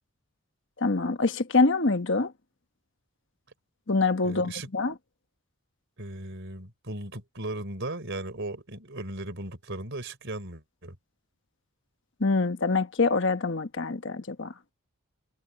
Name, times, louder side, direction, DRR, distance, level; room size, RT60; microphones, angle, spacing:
voice 1, 0.8-2.3 3.9-4.9 12.2-14.5, left 3 dB, 55° left, 1.2 m, -25 dB
voice 2, 4.2-4.7 6.0-11.0, right 2 dB, 55° right, 4.5 m, -37 dB
head